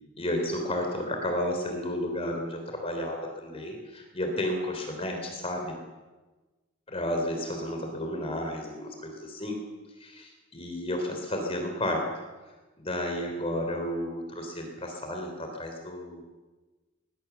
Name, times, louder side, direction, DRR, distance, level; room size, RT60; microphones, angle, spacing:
voice 1, 0.2-5.8 6.9-9.6 10.0-12.1 12.8-16.2, left 1 dB, 30° left, 3 dB, 3.6 m, -32 dB
22.0 x 21.5 x 7.1 m, 1.2 s
head